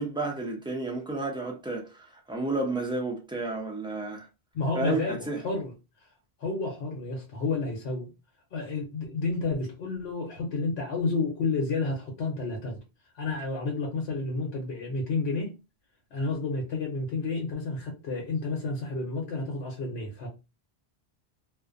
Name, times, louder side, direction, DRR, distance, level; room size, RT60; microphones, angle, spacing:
voice 1, 0.0-4.3 4.8-5.4, right 2 dB, 10° right, 0.3 m, -31 dB
voice 2, 4.5-5.7 6.4-8.1 8.5-12.8 13.1-15.5 16.1-20.3, left 3 dB, 80° left, 1.0 m, -30 dB
2.5 x 2.1 x 2.4 m
omnidirectional pair, 1.1 m